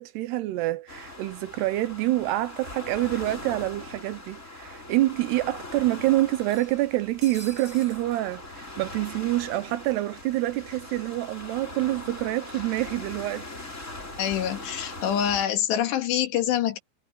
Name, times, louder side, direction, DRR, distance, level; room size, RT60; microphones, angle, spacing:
voice 1, 0.0-13.5, right 16 dB, 75° right, 2.9 m, -27 dB
sound 1, 0.9-15.4, left 2 dB, 15° left, 4.6 m, -41 dB
sound 2, 6.4-8.1, right 1 dB, 10° right, 6.0 m, -47 dB
voice 2, 14.2-16.8, left 10 dB, 80° left, 4.0 m, -25 dB
omnidirectional pair, 5.0 m